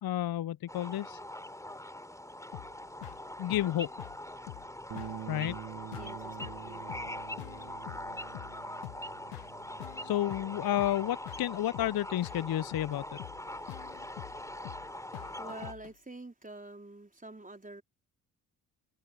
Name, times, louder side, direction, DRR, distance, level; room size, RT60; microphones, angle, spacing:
voice 1, 0.0-1.2 3.4-3.9 5.3-5.6 10.0-13.0, left 13 dB, 50° left, 1.0 m, -31 dB
sound 1, 0.7-15.7, left 1 dB, 5° left, 4.2 m, -43 dB
sound 2, 2.5-15.9, left 30 dB, 75° left, 1.4 m, -47 dB
sound 3, 4.9-11.2, right 11 dB, 50° right, 1.9 m, -47 dB
voice 2, 5.9-7.7 13.6-17.8, right 2 dB, 15° right, 4.6 m, -49 dB
figure-of-eight pair, 40°, 48 cm